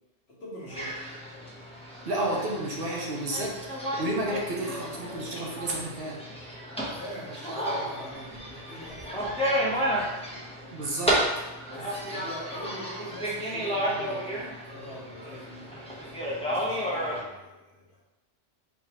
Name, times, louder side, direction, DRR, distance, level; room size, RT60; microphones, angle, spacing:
voice 1, 0.3-1.2 6.8-10.4 11.7-18.1, equal, 60° left, -6 dB, 1.5 m, -44 dB
sound 1, 0.7-17.2, equal, 5° left, 0.6 m, -32 dB
voice 2, 2.1-6.2 10.7-11.2, right 1 dB, 55° right, -2 dB, 0.9 m, -31 dB
3.5 x 3.1 x 4.6 m, 1.1 s
omnidirectional pair, 1.2 m